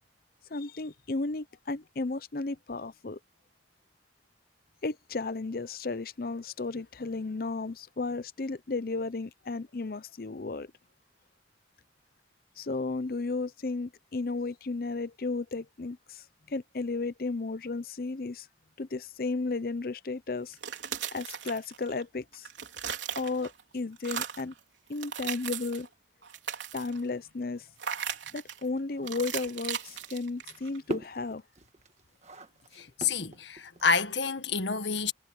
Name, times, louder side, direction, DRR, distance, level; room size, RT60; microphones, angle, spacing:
voice 1, 0.5-3.2 4.8-10.7 12.6-18.5 18.8-20.6 21.1-22.5 23.2-24.5 24.9-25.9 26.7-27.7 28.3-31.4, left 3 dB, 55° left, 0.7 m, -34 dB
sound 1, 20.5-22.0 22.3-23.6 24.0-24.5 24.9-25.9 26.2-27.0 27.8-28.6 29.1-30.8, right 8 dB, 90° right, 4.0 m, -37 dB
sound 2, 27.9-34.1, right 1 dB, 35° right, 1.9 m, -42 dB
voice 2, 32.7-35.1, left 5 dB, 85° left, 1.7 m, -28 dB
head